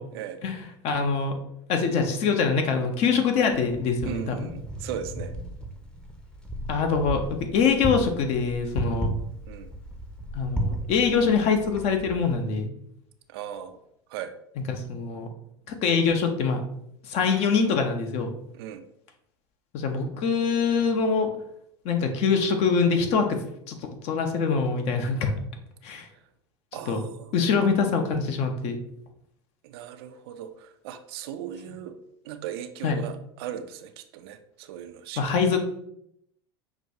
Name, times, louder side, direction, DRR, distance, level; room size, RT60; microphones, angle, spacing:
voice 1, 0.4-1.4 1.7-4.5 6.7-9.1 10.3-12.7 14.6-15.3 15.8-16.6 17.1-18.3 19.7-21.3 21.8-23.4 23.7-23.8 24.0-25.3 25.8-26.1 26.9-27.0 27.3-28.8 32.8-33.0 35.2-35.6, left 5 dB, 50° left, 5 dB, 0.7 m, -24 dB
Wind, 3.5-12.4, right 1 dB, 5° left, 0.7 m, -35 dB
voice 2, 4.0-5.3 9.5-9.7 13.3-13.8 14.1-14.3 18.5-18.8 26.7-27.7 29.6-32.0 32.2-35.3, right 9 dB, 65° right, 9 dB, 0.4 m, -38 dB
5.9 x 2.3 x 2.7 m, 0.75 s
hypercardioid pair, 80°, 14 cm